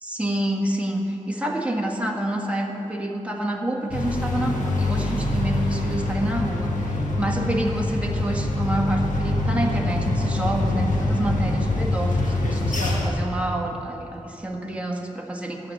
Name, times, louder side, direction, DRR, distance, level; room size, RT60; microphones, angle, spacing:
voice 1, 0.0-15.7, right 1 dB, 10° right, 0 dB, 1.5 m, -28 dB
sound 1, 3.9-13.1, left 2 dB, 90° left, 1.6 m, -24 dB
13.5 x 6.5 x 9.3 m, 2.9 s
wide cardioid pair, 95°, 13 cm